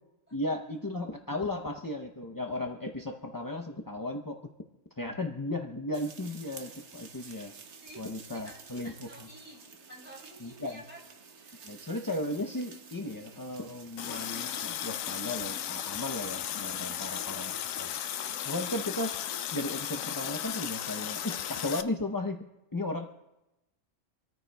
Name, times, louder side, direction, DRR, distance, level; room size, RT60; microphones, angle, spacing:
voice 1, 0.3-4.4 5.0-7.5 8.0-9.1 10.4-10.8 11.6-17.5 17.8-17.9 18.5-19.2 19.5-22.4 22.7-23.1, left 2 dB, 25° left, 3 dB, 0.4 m, -35 dB
sound 1, 5.9-14.6, right 5 dB, 60° right, 1.2 m, -51 dB
voice 2, 8.3-11.0 11.4-11.8 16.9-18.3, right 1 dB, 10° right, -1 dB, 3.4 m, -52 dB
Water tap faucet, 14.0-21.8, left 10 dB, 80° left, 1.0 m, -35 dB
26.5 x 14.0 x 2.2 m, 0.94 s
omnidirectional pair, 1.4 m